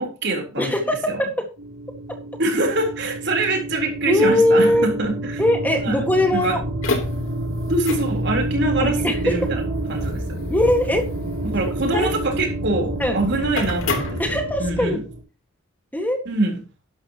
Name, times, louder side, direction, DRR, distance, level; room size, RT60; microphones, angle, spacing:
voice 1, 0.0-0.7 1.1-1.2 2.4-5.4 5.8-6.0 6.3-6.6 7.7-9.0 9.2-9.6 9.9-10.2 11.5-15.0 16.3-16.6, right 2 dB, 55° right, 2 dB, 3.9 m, -24 dB
voice 2, 0.6-1.5 4.1-4.9 5.4-6.6 8.8-9.3 10.5-11.0 11.9-12.1 13.0-13.2 14.2-15.0 15.9-16.2, left 1 dB, 10° left, 4 dB, 1.8 m, -20 dB
sound 1, 1.6-15.2, right 1 dB, 80° right, 4.8 m, -30 dB
sound 2, 6.6-14.9, left 1 dB, 75° left, 3.3 m, -29 dB
12.5 x 11.5 x 3.0 m, 0.32 s
head